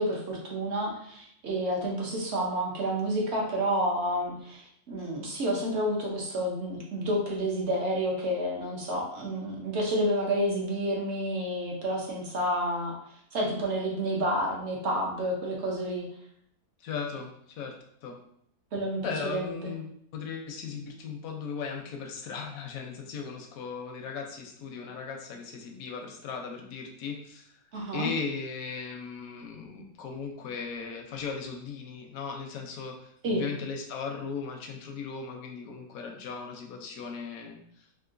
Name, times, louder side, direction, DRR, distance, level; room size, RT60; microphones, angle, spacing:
voice 1, 0.0-12.9 13.3-16.1 18.7-19.7 27.7-28.1 33.2-33.5, equal, 55° right, -2 dB, 0.8 m, -30 dB
voice 2, 16.8-17.7 18.0-18.2 19.0-27.6 27.9-37.6, left 5 dB, 70° left, 2 dB, 0.9 m, -37 dB
3.7 x 2.6 x 2.5 m, 0.68 s
omnidirectional pair, 1.7 m